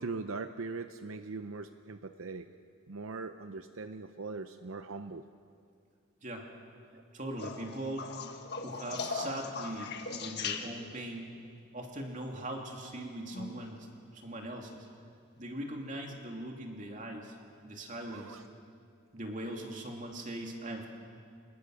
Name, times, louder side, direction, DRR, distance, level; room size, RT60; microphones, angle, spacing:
voice 1, 0.0-2.5 2.9-5.2 18.1-18.4, right 3 dB, 70° right, 9 dB, 0.7 m, -40 dB
voice 2, 6.9-8.1 8.6-11.4 11.7-13.9 14.1-14.7 15.4-17.4 17.6-18.4 19.1-20.9, right 1 dB, 35° right, 1 dB, 2.8 m, -40 dB
sound 1, 7.4-11.1 13.2-13.7 15.4-15.5, left 5 dB, 50° left, 1.6 m, -39 dB
27.0 x 21.5 x 6.5 m, 2.4 s
head